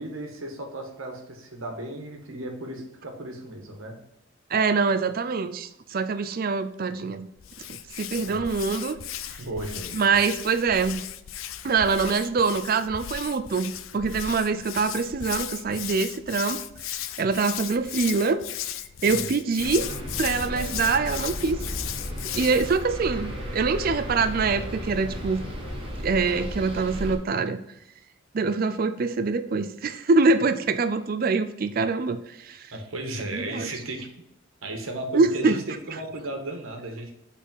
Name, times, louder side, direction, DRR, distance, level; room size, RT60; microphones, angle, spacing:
voice 1, 0.0-4.0 8.2-8.4 9.4-10.2 19.1-19.3 32.7-34.1 34.6-37.1, right 1 dB, 80° right, 3 dB, 1.6 m, -35 dB
voice 2, 4.5-7.3 8.0-9.0 9.9-11.0 11.6-18.4 19.0-19.9 20.2-21.6 22.3-25.4 26.0-27.6 28.3-32.7 33.3-33.7 35.1-35.6, right 4 dB, 45° right, 10 dB, 0.4 m, -24 dB
Hands, 7.4-22.8, left 11 dB, 80° left, 0.5 m, -36 dB
sound 1, 19.6-27.2, equal, 25° right, 1.3 m, -34 dB
6.0 x 4.2 x 5.5 m, 0.82 s
head